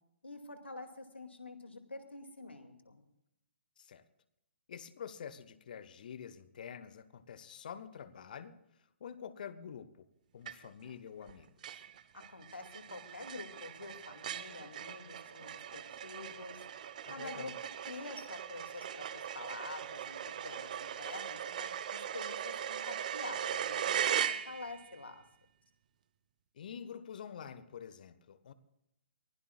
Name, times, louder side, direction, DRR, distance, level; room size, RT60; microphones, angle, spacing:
voice 1, 0.2-3.0 12.1-16.6 17.1-17.5 17.9-24.0 24.3-25.2, left 3 dB, 75° left, 2.4 m, -47 dB
voice 2, 4.7-8.6 9.0-10.1 10.3-11.9 17.0-17.6 26.5-28.5, left 8 dB, 45° left, 1.1 m, -47 dB
sound 1, 10.5-10.9 11.3-11.4 11.6-24.9, right 9 dB, 45° right, 1.0 m, -39 dB
23.5 x 16.5 x 2.4 m
figure-of-eight pair, 130°, 6 cm